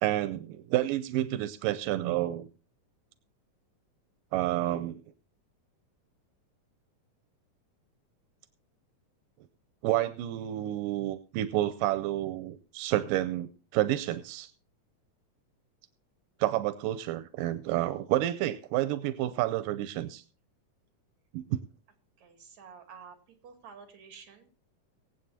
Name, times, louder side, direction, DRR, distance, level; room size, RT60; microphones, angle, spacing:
voice 1, 0.0-2.5 4.3-5.0 9.8-14.5 16.4-20.2 21.3-21.6, right 14 dB, 90° right, 13 dB, 2.4 m, -29 dB
voice 2, 22.2-23.2 23.4-24.5, right 6 dB, 60° right, 5 dB, 3.8 m, -50 dB
24.5 x 8.3 x 2.8 m, 0.35 s
omnidirectional pair, 3.8 m